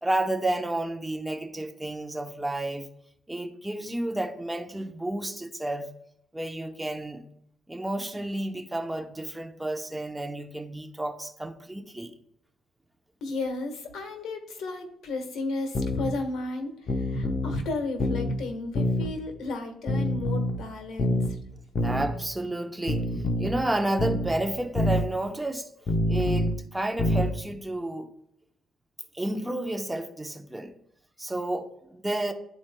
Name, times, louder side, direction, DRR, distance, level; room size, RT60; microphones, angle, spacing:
voice 1, 0.0-2.9 3.3-5.9 6.3-7.2 7.7-12.1 21.8-23.1 23.4-25.7 26.1-28.1 29.1-30.7 31.2-32.3, right 1 dB, 10° right, 0.8 m, -31 dB
voice 2, 13.2-21.4, left 3 dB, 75° left, 1.4 m, -34 dB
sound 1, 15.7-16.1 16.9-17.6 18.0-18.3 18.7-19.1 19.9-20.6 21.0-21.3 21.8-22.1 22.9-23.6 24.0-24.3 24.8-25.0 25.9-26.6 27.0-27.3, left 1 dB, 50° left, 0.9 m, -26 dB
11.0 x 4.3 x 2.2 m
cardioid pair, 90°, 0 cm